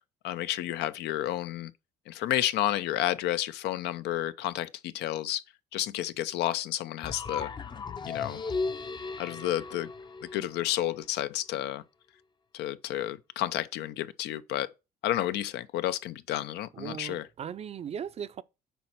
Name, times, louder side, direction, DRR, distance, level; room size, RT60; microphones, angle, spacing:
voice 1, 0.2-1.7 2.1-5.4 5.7-7.5 8.1-8.4 9.2-9.9 10.3-11.8 12.5-14.7 15.0-17.2, left 13 dB, 80° left, 0.6 m, -31 dB
sound 1, 7.0-11.0, left 4 dB, 25° left, 0.6 m, -36 dB
voice 2, 16.7-18.4, right 8 dB, 40° right, 0.5 m, -38 dB
6.9 x 4.4 x 5.8 m
cardioid pair, 110°, 17 cm